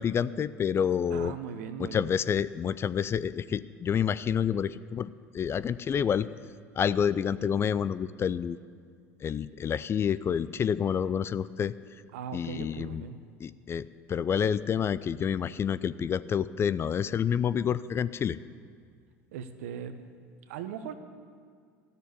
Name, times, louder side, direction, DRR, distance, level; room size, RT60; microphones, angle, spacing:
voice 1, 0.0-1.3 1.8-6.3 6.8-8.6 9.2-11.7 12.3-13.0 13.4-18.4, left 8 dB, 35° left, 16 dB, 0.4 m, -28 dB
voice 2, 1.1-2.1 12.1-13.2 19.3-20.0 20.5-20.9, right 7 dB, 75° right, 9 dB, 0.9 m, -39 dB
13.5 x 6.8 x 9.6 m, 2.1 s
hypercardioid pair, 75°, 8 cm